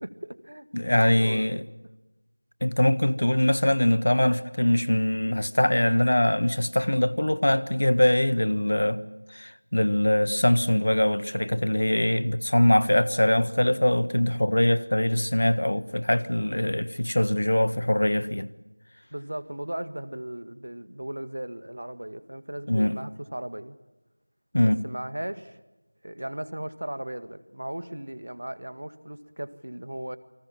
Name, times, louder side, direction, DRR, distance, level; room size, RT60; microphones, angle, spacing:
voice 1, 0.0-0.7 1.1-1.6 19.1-23.8 24.8-25.6 26.0-30.2, right 1 dB, 55° right, 1.8 m, -37 dB
voice 2, 0.7-1.6 2.6-9.0 9.3-18.5 22.7-23.0 24.5-24.8, left 1 dB, 55° left, 1.4 m, -23 dB
29.0 x 24.5 x 7.3 m
figure-of-eight pair, 175°, 0 cm